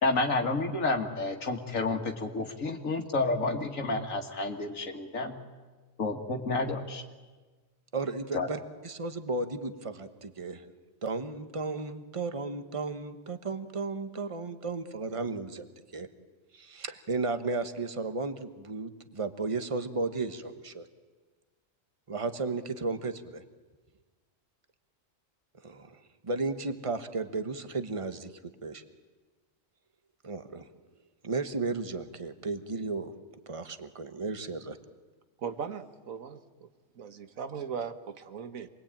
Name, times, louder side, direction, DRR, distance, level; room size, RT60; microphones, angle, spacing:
voice 1, 0.0-5.4 6.0-7.0 8.3-8.5, left 3 dB, 75° left, 4 dB, 2.1 m, -30 dB
voice 2, 7.9-10.6 11.0-15.7 15.9-16.1 16.5-20.9 22.1-23.4 25.6-28.3 28.6-28.8 30.2-30.7 31.2-33.1 33.5-34.8, right 3 dB, 25° right, 9 dB, 1.3 m, -34 dB
voice 3, 35.4-36.7 36.9-38.7, right 6 dB, 85° right, 10 dB, 1.7 m, -38 dB
27.5 x 21.5 x 8.9 m, 1.3 s
omnidirectional pair, 1.4 m